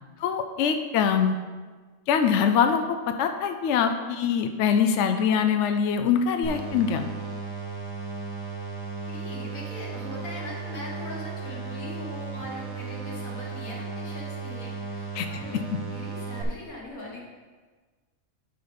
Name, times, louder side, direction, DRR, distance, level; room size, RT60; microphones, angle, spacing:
voice 1, 0.2-1.4 2.1-7.0 15.1-15.3 15.5-15.6, left 7 dB, 70° left, 6 dB, 0.8 m, -23 dB
sound 1, 6.4-16.4, right 5 dB, 75° right, 1.5 m, -35 dB
voice 2, 9.1-15.6 15.9-17.2, left 1 dB, 90° left, -3 dB, 2.2 m, -40 dB
11.0 x 4.1 x 5.1 m, 1.4 s
omnidirectional pair, 1.4 m